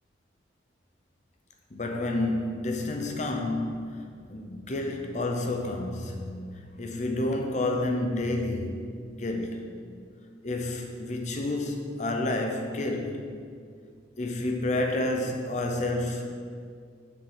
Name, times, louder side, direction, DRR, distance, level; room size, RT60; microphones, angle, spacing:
voice 1, 1.7-6.5 6.8-9.8 10.4-13.3 14.2-16.2, left 2 dB, 40° left, 0.8 m, -30 dB
6.6 x 4.9 x 6.9 m
head